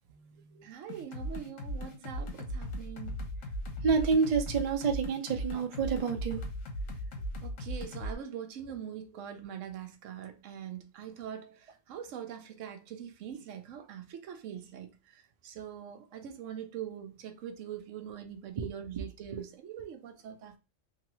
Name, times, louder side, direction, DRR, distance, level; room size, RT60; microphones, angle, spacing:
voice 1, 0.1-3.1 7.4-20.6, right 9 dB, 75° right, 0.9 m, -43 dB
sound 1, 0.9-8.1, equal, 90° left, 1.1 m, -38 dB
voice 2, 3.8-6.4 18.6-18.7, right 5 dB, 55° right, 0.4 m, -28 dB
2.9 x 2.6 x 2.9 m
omnidirectional pair, 1.3 m